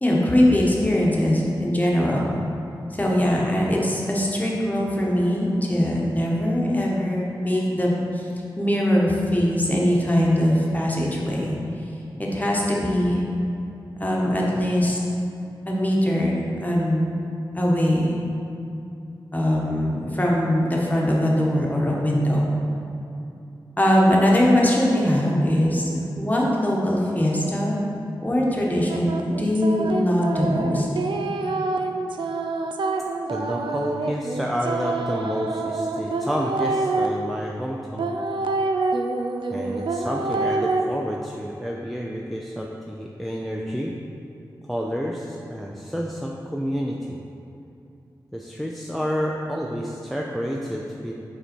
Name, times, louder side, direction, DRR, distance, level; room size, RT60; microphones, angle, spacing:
voice 1, 0.0-2.3 2.9-8.2 8.6-11.6 12.3-13.2 14.0-15.0 15.6-17.1 17.5-18.2 19.3-22.5 23.8-27.8 28.2-30.9, equal, 20° left, -3 dB, 1.2 m, -21 dB
sound 1, 28.9-37.1 38.0-40.8, right 3 dB, 80° right, 0.4 m, -26 dB
voice 2, 33.3-38.1 39.5-43.9 44.7-47.2 48.3-51.1, equal, ahead, -1 dB, 0.5 m, -29 dB
5.5 x 4.2 x 4.4 m, 2.7 s
cardioid pair, 50°, 8 cm